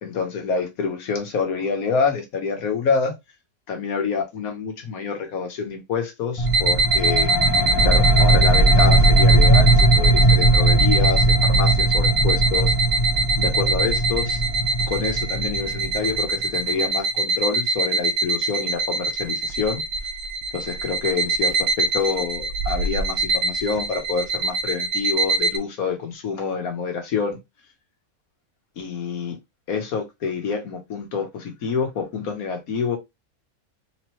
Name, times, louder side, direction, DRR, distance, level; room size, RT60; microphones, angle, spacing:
voice 1, 0.0-3.1 3.7-7.3 7.8-12.7 13.4-14.4 14.9-19.8 20.5-27.4 28.8-29.4 29.7-33.0, left 5 dB, 80° left, 1.5 m, -27 dB
sound 1, 6.4-16.6, right 2 dB, 20° left, 0.6 m, -19 dB
sound 2, 6.5-25.6, right 3 dB, 70° right, 1.0 m, -23 dB
3.9 x 3.1 x 3.0 m
omnidirectional pair, 1.5 m